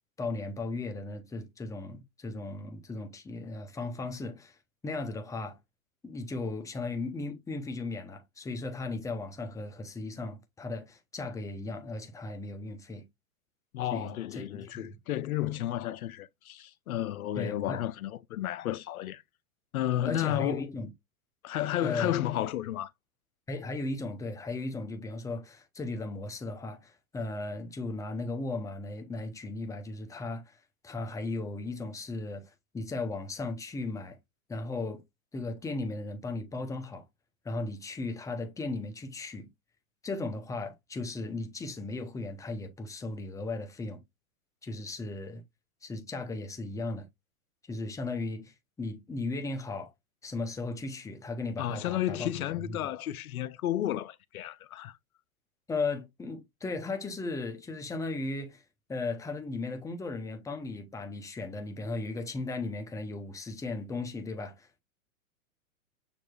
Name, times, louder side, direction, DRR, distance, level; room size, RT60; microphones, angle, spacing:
voice 1, 0.2-4.6 4.8-5.6 6.0-13.1 13.9-15.0 17.3-17.8 20.1-20.9 21.8-22.3 23.5-30.6 30.8-34.2 34.5-35.0 35.3-37.1 37.4-39.5 40.0-44.0 44.6-45.4 45.8-47.1 47.7-49.9 50.2-52.9 55.7-58.6 58.9-64.8, left 3 dB, 10° left, 0.8 m, -36 dB
voice 2, 13.7-19.2 19.7-20.7 21.4-22.9 51.6-55.0, left 13 dB, 85° left, 0.5 m, -32 dB
6.8 x 2.9 x 2.4 m
hypercardioid pair, 115°, 41 cm